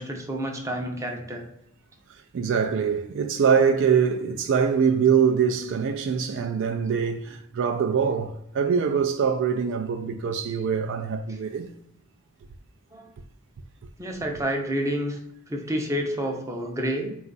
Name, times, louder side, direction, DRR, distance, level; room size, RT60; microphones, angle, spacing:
voice 1, 0.0-1.5 7.0-7.1 12.9-13.1 14.0-15.2 15.5-17.2, equal, 15° right, 0.6 m, -29 dB
voice 2, 2.3-11.7, right 6 dB, 60° right, 0.4 m, -23 dB
4.3 x 2.4 x 3.9 m
head